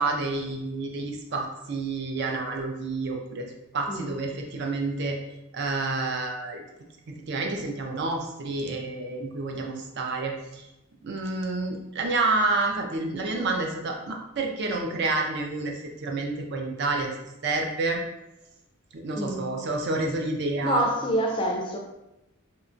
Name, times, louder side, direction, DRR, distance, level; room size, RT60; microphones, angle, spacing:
voice 1, 0.0-5.2 5.5-6.6 7.1-10.7 11.0-17.1 17.4-18.0 18.9-20.8, right 3 dB, 50° right, 2 dB, 0.4 m, -29 dB
voice 2, 19.2-19.5 20.6-21.8, equal, 25° left, 1 dB, 0.3 m, -27 dB
2.8 x 2.2 x 2.5 m, 0.92 s
head